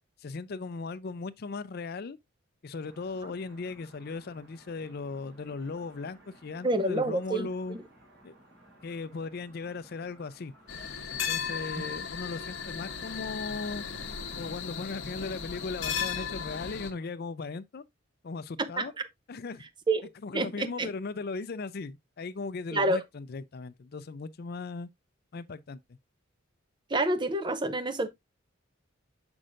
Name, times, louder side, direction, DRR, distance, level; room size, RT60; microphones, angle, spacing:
voice 1, 0.2-2.2 2.6-7.8 8.2-8.4 8.8-10.5 11.1-13.9 14.4-17.8 18.2-18.9 19.3-19.7 20.2-24.9 25.3-26.0, left 4 dB, 50° left, 0.4 m, -37 dB
sound 1, 2.8-17.1, right 1 dB, 60° right, 4.5 m, -58 dB
voice 2, 6.6-7.5 18.6-19.0 19.9-20.1 20.3-20.9 22.7-23.0 26.9-28.1, right 2 dB, 25° right, 0.6 m, -28 dB
sound 2, 10.7-16.9, left 7 dB, 70° left, 1.0 m, -36 dB
6.3 x 6.0 x 2.5 m
head